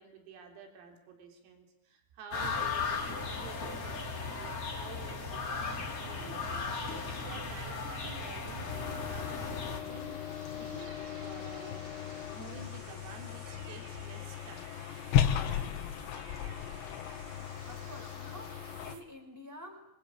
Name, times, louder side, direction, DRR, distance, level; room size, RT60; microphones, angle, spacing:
voice 1, 0.0-10.9 11.2-14.7 15.4-15.7, right 6 dB, 85° right, 3 dB, 6.1 m, -51 dB
sound 1, 2.3-9.8, left 4 dB, 30° left, 4.3 m, -36 dB
sound 2, 8.7-19.0, left 10 dB, 70° left, 3.4 m, -36 dB
sound 3, 8.7-19.0, right 5 dB, 65° right, 5.0 m, -54 dB
voice 2, 17.7-19.9, equal, 5° right, 4 dB, 4.1 m, -49 dB
26.0 x 25.0 x 8.6 m, 0.85 s
omnidirectional pair, 5.8 m